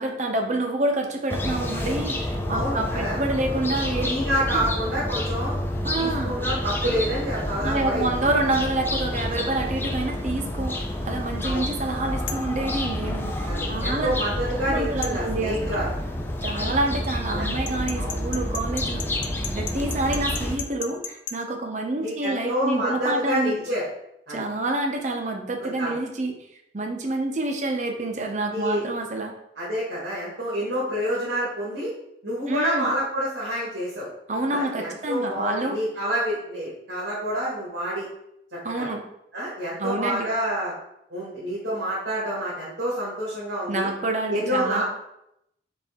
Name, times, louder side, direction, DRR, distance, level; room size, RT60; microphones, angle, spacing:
voice 1, 0.0-4.0 4.5-4.7 5.8-6.3 7.6-14.3 14.7-15.8 16.4-19.0 19.5-23.6 24.3-26.3 26.7-29.3 32.5-32.9 34.3-35.8 38.6-39.0 39.8-40.3 43.7-44.8, right 2 dB, 40° right, 3 dB, 0.6 m, -27 dB
sound 1, 1.3-20.5, left 1 dB, 10° left, 0.4 m, -29 dB
voice 2, 2.5-3.2 4.0-5.5 6.0-8.0 11.4-11.7 13.4-15.9 16.5-16.7 17.3-17.5 18.0-18.1 22.0-23.8 24.3-24.4 25.6-25.9 28.5-28.8 29.6-31.9 32.2-34.1 34.5-38.1 38.5-38.9 39.3-40.7 41.1-43.9 44.3-44.8, equal, 85° right, -7 dB, 1.6 m, -28 dB
sound 2, 12.3-12.5 15.0-15.2 17.7-21.4, left 7 dB, 85° left, 0.4 m, -34 dB
4.2 x 3.3 x 3.5 m, 0.80 s
head